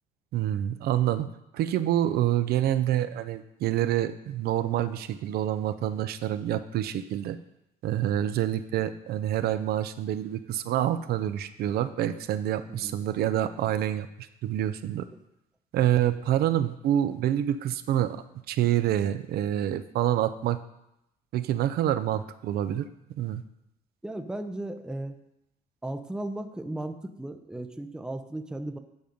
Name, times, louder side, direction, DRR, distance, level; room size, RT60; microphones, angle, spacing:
voice 1, 0.3-1.3 1.5-7.4 7.8-15.1 15.7-20.6 21.3-22.9 23.2-23.4, right 11 dB, 70° right, 11 dB, 0.5 m, -27 dB
voice 2, 24.0-25.1 25.8-28.8, right 1 dB, 5° right, 7 dB, 0.6 m, -36 dB
9.3 x 5.1 x 5.2 m, 0.84 s
cardioid pair, 110°, 17 cm